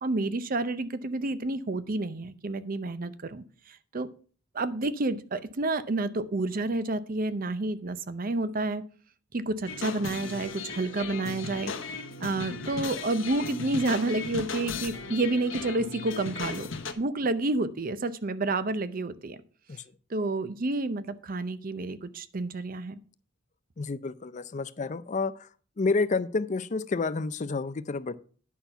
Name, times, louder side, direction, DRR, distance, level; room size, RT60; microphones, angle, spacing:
voice 1, 0.0-4.1 4.5-8.8 9.3-11.7 12.2-16.7 17.0-19.4 19.7-19.8 20.1-23.0, right 2 dB, 45° right, 14 dB, 0.6 m, -30 dB
sound 1, 9.7-16.9, left 4 dB, 75° left, 1.1 m, -36 dB
voice 2, 23.8-25.3 25.8-28.1, left 3 dB, 35° left, 15 dB, 0.5 m, -29 dB
10.0 x 5.8 x 5.7 m, 0.42 s
head